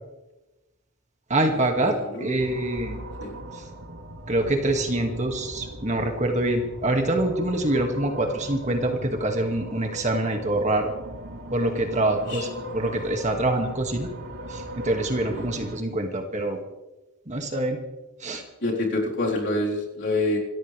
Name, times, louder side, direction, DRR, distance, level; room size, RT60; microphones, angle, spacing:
voice 1, 1.3-3.0 3.5-3.6 4.3-10.9 11.5-12.5 12.7-14.1 14.5-16.6 17.3-17.8 18.2-18.4, right 1 dB, 35° right, 3 dB, 2.2 m, -25 dB
voice 2, 1.8-2.3 3.2-3.3 12.3-12.4 15.3-15.5 18.6-20.4, left 2 dB, 55° left, -3 dB, 4.3 m, -26 dB
sound 1, 2.4-15.8, right 1 dB, 90° right, 3.1 m, -39 dB
27.5 x 14.5 x 3.4 m, 1.0 s
head